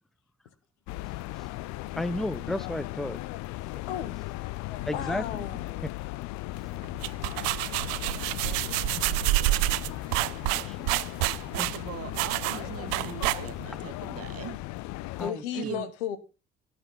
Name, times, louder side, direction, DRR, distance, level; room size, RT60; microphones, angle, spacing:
sound 1, 0.9-15.3, left 19 dB, 55° left, 0.5 m, -37 dB
voice 1, 1.9-3.2 3.8-3.9 4.8-5.9 8.9-9.0 9.9-10.0 10.5-11.0 11.6-11.7 15.2-15.8, left 1 dB, ahead, 0.6 m, -34 dB
voice 2, 3.9-4.3 4.6-5.9 15.2-16.2, left 10 dB, 75° left, 1.1 m, -35 dB
sound 2, 6.8-13.8, right 20 dB, 70° right, 0.5 m, -28 dB
voice 3, 11.5-14.6 15.5-15.9, right 11 dB, 45° right, 0.8 m, -40 dB
13.0 x 8.8 x 3.8 m
hypercardioid pair, 50°, 34 cm